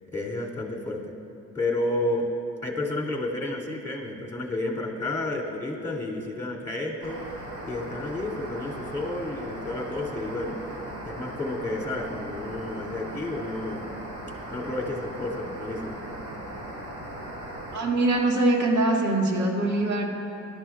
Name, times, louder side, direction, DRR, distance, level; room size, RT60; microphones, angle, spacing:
voice 1, 0.1-1.0 1.5-2.3 2.6-7.2 7.6-10.6 11.0-13.9 14.5-16.0, left 2 dB, 10° left, -2 dB, 2.5 m, -31 dB
sound 1, 7.0-17.8, right 1 dB, 85° right, 2.2 m, -38 dB
voice 2, 17.7-20.1, right 2 dB, 70° right, -1 dB, 2.0 m, -23 dB
20.0 x 12.5 x 2.3 m, 2.7 s
cardioid pair, 90°, 30 cm